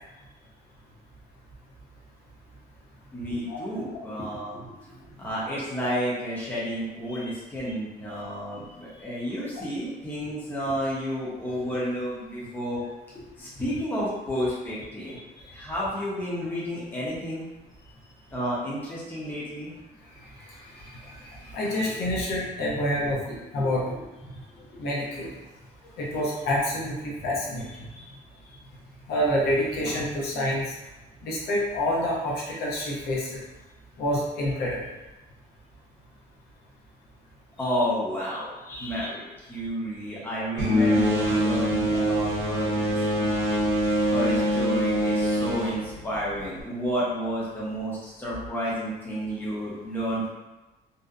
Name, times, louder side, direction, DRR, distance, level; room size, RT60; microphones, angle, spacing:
voice 1, 3.1-12.8 13.4-15.2 15.5-17.4 18.3-19.7 23.3-23.4 23.8-24.1 24.6-24.7 37.6-38.5 38.8-43.7 44.1-50.3, equal, 10° left, -7 dB, 0.6 m, -31 dB
voice 2, 20.8-23.8 24.8-25.3 26.0-28.0 29.1-30.7 31.2-33.4 34.0-34.8 38.7-39.1, left 1 dB, 65° left, -4 dB, 0.7 m, -28 dB
sound 1, 40.6-46.6, equal, 75° right, 0.6 m, -24 dB
2.6 x 2.0 x 2.4 m, 1.1 s
cardioid pair, 170°, 18 cm